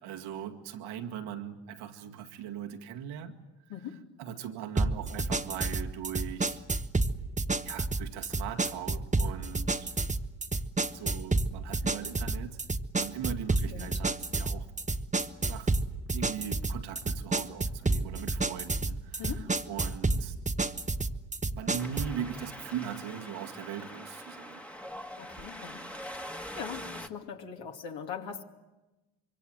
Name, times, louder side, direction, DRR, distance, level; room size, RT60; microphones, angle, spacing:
voice 1, 0.0-3.4 4.2-6.8 7.6-9.9 10.9-12.6 12.9-14.7 15.4-15.8 16.1-19.3 19.7-20.4 21.5-24.6, right 9 dB, 80° right, 2.2 m, -40 dB
voice 2, 3.7-4.2 13.7-13.9 19.2-19.7 25.2-28.4, left 7 dB, 65° left, 2.5 m, -41 dB
sound 1, 4.8-22.2, right 3 dB, 15° right, 1.0 m, -30 dB
Wind, 21.8-27.1, equal, 5° left, 1.6 m, -43 dB
25.5 x 23.0 x 8.0 m
supercardioid pair, 65°, 48 cm